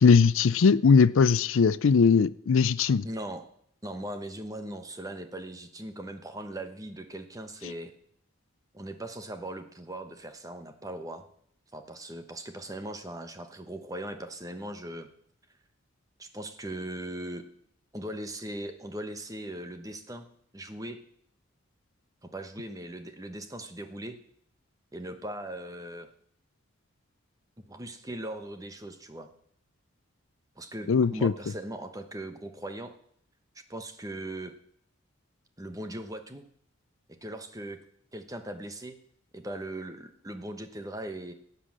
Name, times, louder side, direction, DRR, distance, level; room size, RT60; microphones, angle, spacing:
voice 1, 0.0-3.1 30.9-31.3, left 5 dB, 70° left, 17 dB, 0.4 m, -20 dB
voice 2, 3.0-3.4 3.8-7.9 8.7-11.2 11.7-15.1 16.2-17.5 17.9-20.3 20.5-21.0 22.2-24.2 24.9-26.1 27.6-29.3 30.6-32.9 33.7-34.5 35.6-36.4 37.2-37.8 38.1-39.0 39.3-41.3, right 1 dB, 15° right, 8 dB, 1.0 m, -39 dB
13.0 x 8.4 x 7.5 m, 0.68 s
head